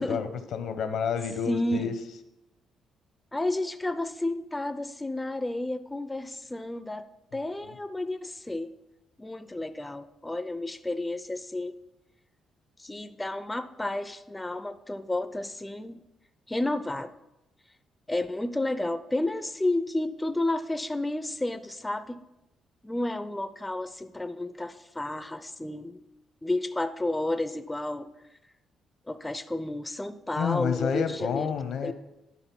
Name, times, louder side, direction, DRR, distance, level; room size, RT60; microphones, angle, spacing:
voice 1, 0.0-1.9 7.6-7.7 30.4-31.9, left 7 dB, 75° left, 10 dB, 0.7 m, -29 dB
voice 2, 1.5-1.9 3.3-7.1 7.3-8.7 9.2-11.7 12.8-16.0 16.5-17.1 18.1-22.2 22.8-26.0 26.4-28.1 29.1-31.5 31.8-31.9, left 2 dB, 10° left, 12 dB, 0.4 m, -31 dB
10.0 x 3.8 x 5.9 m, 0.93 s
cardioid pair, 90°, 0 cm